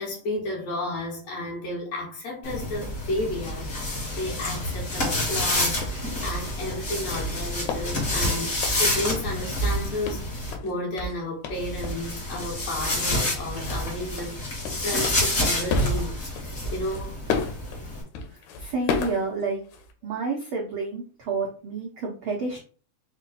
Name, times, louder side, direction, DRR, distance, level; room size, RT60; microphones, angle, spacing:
voice 1, 0.0-16.2 16.7-17.3, left 1 dB, 60° left, 2.7 m, -32 dB
sound 1, 2.4-10.5 11.5-18.0, left 1 dB, 30° left, 1.3 m, -28 dB
sound 2, 5.8-9.3 9.6-12.1 12.3-12.5 12.8-13.0 13.3-19.9, left 3 dB, 85° left, 2.2 m, -32 dB
voice 2, 18.3-19.6 20.0-22.6, right 4 dB, 75° right, 1.2 m, -30 dB
5.4 x 2.3 x 4.1 m
omnidirectional pair, 3.4 m